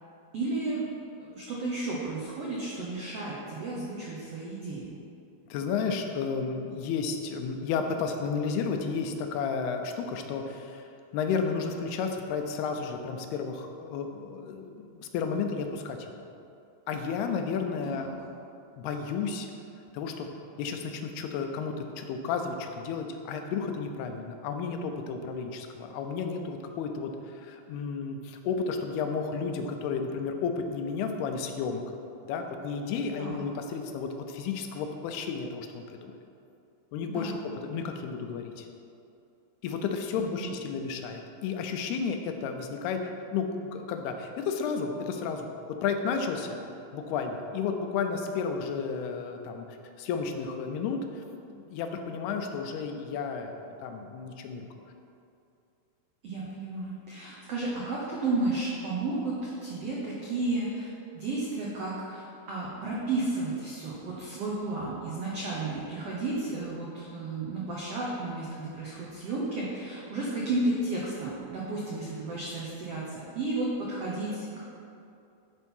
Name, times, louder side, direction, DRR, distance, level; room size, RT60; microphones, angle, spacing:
voice 1, 0.3-0.8 1.2-4.9 17.9-18.1 33.2-33.4 37.1-37.4 40.1-40.5 56.2-60.9 61.1-62.2 62.5-74.6, right 2 dB, 90° right, -5 dB, 1.3 m, -33 dB
voice 2, 5.5-16.2 16.9-18.2 18.8-19.5 19.9-20.3 20.6-31.8 32.3-36.1 36.9-37.3 37.6-38.7 39.6-43.0 43.3-45.5 45.8-46.6 46.9-49.6 50.0-51.2 51.5-54.7, left 5 dB, 85° left, 5 dB, 2.7 m, -32 dB
11.0 x 4.6 x 5.4 m, 2.6 s
omnidirectional pair, 4.5 m